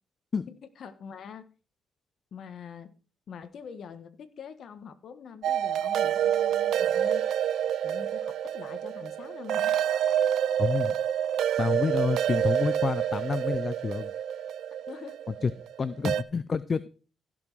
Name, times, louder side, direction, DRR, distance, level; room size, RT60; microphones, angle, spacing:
voice 1, 0.5-1.5 2.3-2.9 3.3-7.2 7.8-9.7 14.9-15.2, left 7 dB, 60° left, 9 dB, 1.4 m, -44 dB
sound 1, 5.4-16.2, right 10 dB, 75° right, 0.6 m, -28 dB
voice 2, 10.6-10.9 11.6-14.1 15.4-15.5 15.8-16.9, left 5 dB, 40° left, 16 dB, 0.6 m, -28 dB
16.0 x 6.2 x 4.6 m, 0.36 s
cardioid pair, 90°, 0 cm